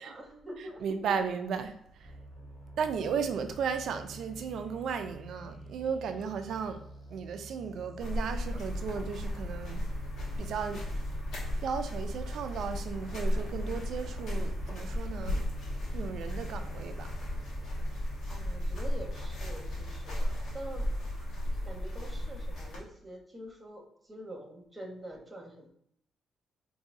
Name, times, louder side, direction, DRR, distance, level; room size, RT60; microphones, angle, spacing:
voice 1, 0.0-0.8 18.3-21.1 21.6-25.7, right 1 dB, 15° right, 1.0 m, -46 dB
voice 2, 0.8-2.1 2.8-6.8 7.1-9.8 10.4-10.9 11.6-15.4 15.9-17.1, right 6 dB, 70° right, 0.4 m, -35 dB
sound 1, 2.0-20.6, right 1 dB, 25° left, 1.3 m, -48 dB
sound 2, 8.0-22.8, left 1 dB, 70° left, 1.4 m, -35 dB
4.8 x 2.7 x 2.6 m
cardioid pair, 90°, 0 cm